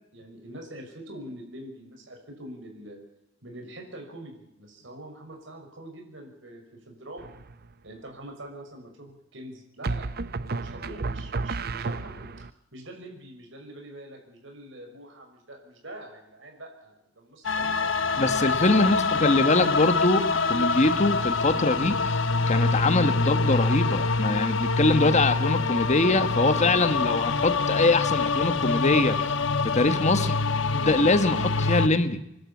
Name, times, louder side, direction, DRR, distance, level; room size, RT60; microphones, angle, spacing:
voice 1, 0.0-3.0 3.4-7.3 7.8-12.3 12.7-18.1 18.7-19.2, right 1 dB, 70° right, 2 dB, 6.0 m, -44 dB
sound 1, 7.2-7.7 9.8-12.5, right 3 dB, 55° right, 0.7 m, -32 dB
sound 2, 17.4-31.9, left 4 dB, 75° left, 1.3 m, -25 dB
voice 2, 18.2-22.2 22.5-29.2 29.6-30.4 30.7-32.2, left 2 dB, 35° left, 10 dB, 1.5 m, -23 dB
28.5 x 12.0 x 8.7 m, 0.83 s
head